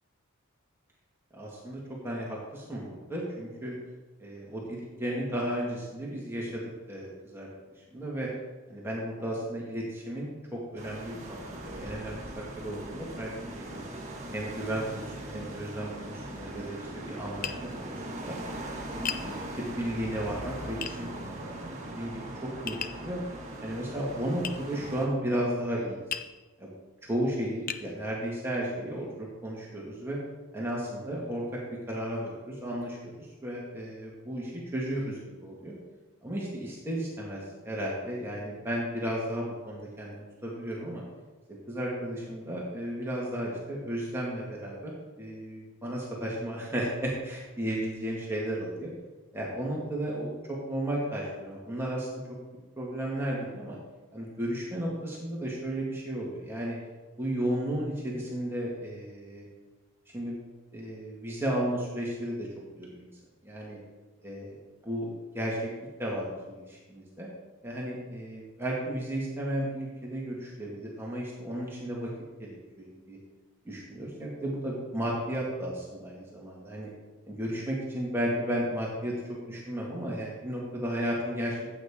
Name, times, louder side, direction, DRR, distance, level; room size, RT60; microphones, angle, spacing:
voice 1, 1.3-3.7 4.2-6.6 6.9-7.5 7.9-8.3 8.7-13.9 14.3-18.4 18.9-21.6 21.9-23.2 23.6-26.0 26.6-26.7 27.0-30.2 30.5-35.7 36.2-41.0 41.7-44.9 45.2-48.9 49.3-52.2 52.8-53.8 54.1-56.8 57.2-59.5 60.1-60.4 60.7-62.5 62.7-63.1 63.4-63.8 64.2-64.6 64.8-65.1 65.3-65.7 66.0-67.3 67.6-72.1 72.4-73.2 73.7-76.9 77.3-81.7, right 1 dB, 10° right, -4 dB, 1.9 m, -34 dB
sound 1, 10.8-25.1, right 1 dB, 30° right, 1.7 m, -40 dB
Tap, 17.4-17.6 19.1-19.3 20.8-21.0 22.7-23.0 24.4-24.6 26.1-26.3 27.0-27.1 27.7-27.9, left 8 dB, 40° left, 0.5 m, -34 dB
14.5 x 8.6 x 3.7 m, 1.2 s
head